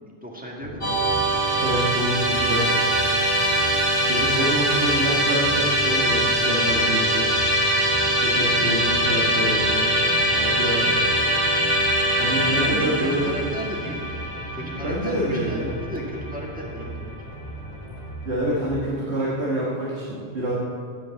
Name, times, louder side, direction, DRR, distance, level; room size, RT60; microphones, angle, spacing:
voice 1, 0.2-1.1 2.9-3.2 8.5-8.9 10.3-10.8 12.6-17.2, equal, 5° right, -2 dB, 1.7 m, -35 dB
sound 1, 0.6-18.9, right 1 dB, 90° left, 2.2 m, -37 dB
Musical instrument, 0.8-16.0, right 1 dB, 25° left, 2.9 m, -22 dB
voice 2, 1.6-2.8 4.1-7.3 8.2-9.9 10.6-10.9 12.2-13.3 14.8-15.8 18.2-20.5, right 1 dB, 65° right, -6 dB, 1.7 m, -27 dB
8.6 x 8.5 x 7.0 m, 2.3 s
omnidirectional pair, 1.2 m